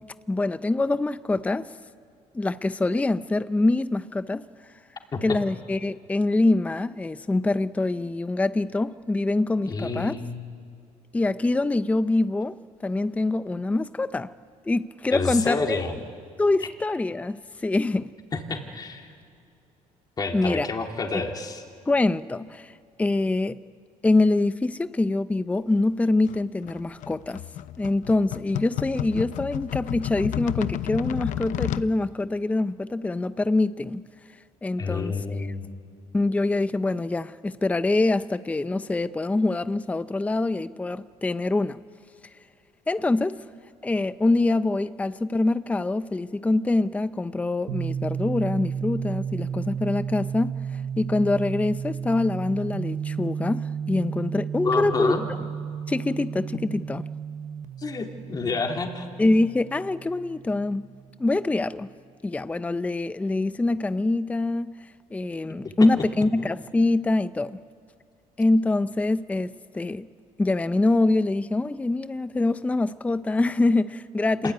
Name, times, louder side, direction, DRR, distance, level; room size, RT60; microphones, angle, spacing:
voice 1, 0.3-1.7 2.3-4.5 5.2-10.2 11.1-14.3 14.7-15.8 16.4-18.1 20.3-20.7 21.1-21.2 21.9-22.7 23.0-23.6 24.0-27.4 27.8-34.0 34.6-35.1 36.1-41.8 42.9-43.4 43.8-55.1 55.9-57.0 59.2-61.9 62.2-64.7 65.1-67.6 68.4-70.1 70.4-74.5, left 2 dB, 10° left, 0.6 m, -24 dB
voice 2, 9.6-10.4 15.1-15.9 18.3-19.1 20.2-21.6 34.8-35.7 54.6-55.3 57.8-59.1 74.4-74.5, left 4 dB, 30° left, 3.2 m, -29 dB
sound 1, 26.3-31.9, left 12 dB, 65° left, 0.8 m, -31 dB
sound 2, 47.7-61.3, right 7 dB, 65° right, 1.1 m, -33 dB
26.5 x 21.5 x 9.6 m
cardioid pair, 120°, 14 cm